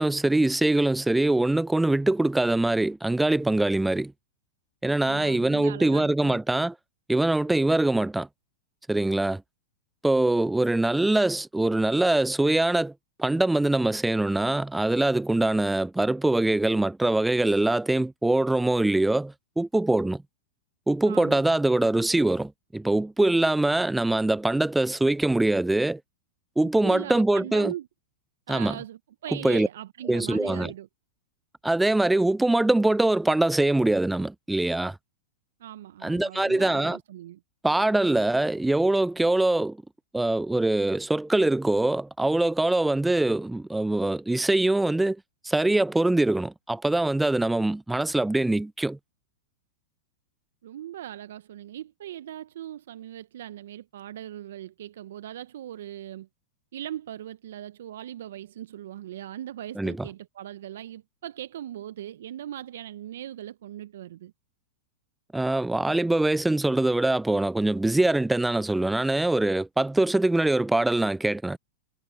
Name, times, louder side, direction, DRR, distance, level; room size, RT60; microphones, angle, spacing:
voice 1, 0.0-4.1 4.8-6.7 7.1-8.3 8.9-9.4 10.0-12.9 13.2-20.2 20.9-26.0 26.6-27.7 28.5-28.8 29.4-29.7 30.1-30.7 31.6-35.0 36.0-37.0 37.6-39.8 40.1-45.2 45.4-49.0 59.8-60.1 65.3-71.6, right 2 dB, 5° right, 0.4 m, -23 dB
voice 2, 5.0-6.4 21.1-21.4 26.8-27.9 28.5-30.9 35.6-37.4 50.6-56.3 56.7-64.3, right 12 dB, 70° right, 0.8 m, -39 dB
hypercardioid pair, 105°, 0 cm